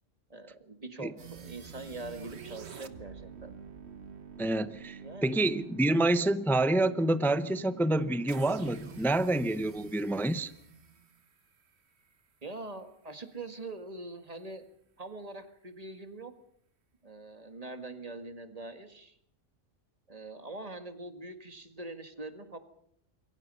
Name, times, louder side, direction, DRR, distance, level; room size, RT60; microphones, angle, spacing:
voice 1, 0.3-3.6 5.0-5.4 12.4-14.7 15.0-16.3 17.0-19.2 20.1-22.6, right 2 dB, 30° right, 1.9 m, -43 dB
sound 1, 1.2-12.1, right 6 dB, 60° right, 1.5 m, -48 dB
voice 2, 4.4-10.5, right 2 dB, ahead, 0.6 m, -28 dB
26.0 x 23.0 x 5.5 m
omnidirectional pair, 1.3 m